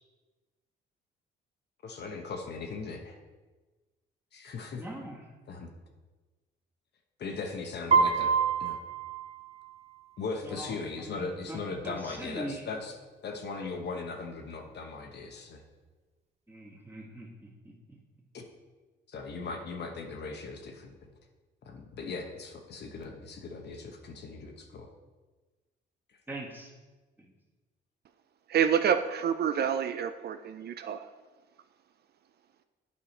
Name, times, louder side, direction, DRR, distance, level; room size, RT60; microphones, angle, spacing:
voice 1, 1.8-3.2 4.3-4.8 5.5-5.7 7.2-8.8 10.2-12.9 13.2-15.6 18.3-18.4 19.1-20.9 21.6-24.9, left 4 dB, 60° left, 3 dB, 1.1 m, -38 dB
voice 2, 4.8-5.3 10.4-12.7 16.5-18.0 26.3-26.7 27.2-27.3, right 1 dB, 10° right, -3 dB, 1.8 m, -42 dB
Piano, 7.9-9.9, right 5 dB, 30° right, 0.8 m, -27 dB
voice 3, 28.5-31.1, right 8 dB, 55° right, 9 dB, 0.4 m, -28 dB
8.8 x 4.7 x 4.4 m, 1.3 s
cardioid pair, 90°, 20 cm